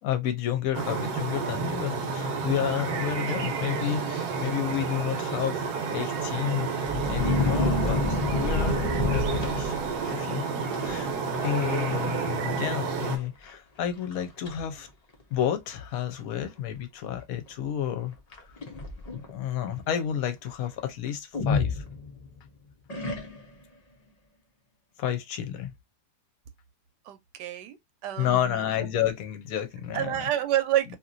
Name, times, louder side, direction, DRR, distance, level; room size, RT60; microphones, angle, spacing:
voice 1, 0.0-5.6 5.9-9.7 10.0-10.4 10.8-11.1 11.4-14.9 15.3-18.4 19.3-21.8 25.0-25.7 28.2-30.3, left 10 dB, 65° left, 1.0 m, -30 dB
sound 1, 0.7-13.2, right 5 dB, 70° right, 1.3 m, -30 dB
voice 2, 3.2-3.6 27.1-28.6 29.9-31.0, right 12 dB, 90° right, 1.3 m, -29 dB
sound 2, 6.8-10.1 10.7-11.0 11.3-11.7 12.0-12.1 12.9-13.0 13.5-13.6 14.1-14.5 15.4-15.5 18.3-19.3 21.3-22.4 22.9-23.6, left 3 dB, 50° left, 0.4 m, -28 dB
2.9 x 2.8 x 2.5 m
omnidirectional pair, 1.8 m